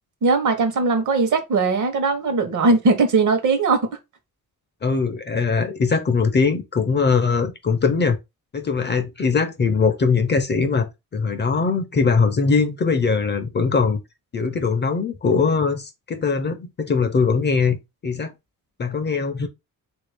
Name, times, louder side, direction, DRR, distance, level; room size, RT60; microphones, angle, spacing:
voice 1, 0.2-3.9, right 3 dB, 60° right, 0.9 m, -19 dB
voice 2, 4.8-8.2 8.5-14.0 14.3-18.3 18.8-19.5, left 5 dB, 30° left, 0.5 m, -21 dB
3.4 x 2.5 x 3.3 m
wide cardioid pair, 155°, 35 cm